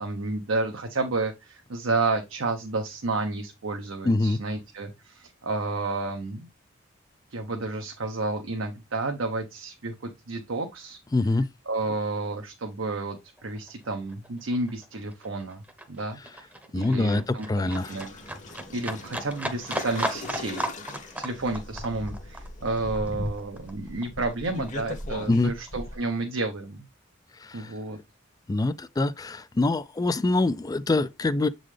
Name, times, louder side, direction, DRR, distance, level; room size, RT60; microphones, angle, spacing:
voice 1, 0.0-6.5 7.3-11.0 11.7-15.6 15.9-18.1 18.7-20.6 21.1-26.8 27.5-28.0, right 3 dB, 75° right, 0.9 m, -31 dB
voice 2, 4.0-4.4 11.1-11.5 16.7-17.9 25.3-25.5 27.4-27.7 28.5-31.5, left 2 dB, 20° left, 0.3 m, -24 dB
Livestock farm animals working animals, 13.1-13.2 13.4-24.4 24.7-25.7 26.0-26.1, right 1 dB, 10° right, 0.8 m, -36 dB
sound 1, 17.7-26.0, left 1 dB, 40° left, 1.0 m, -39 dB
7.5 x 3.9 x 3.2 m
head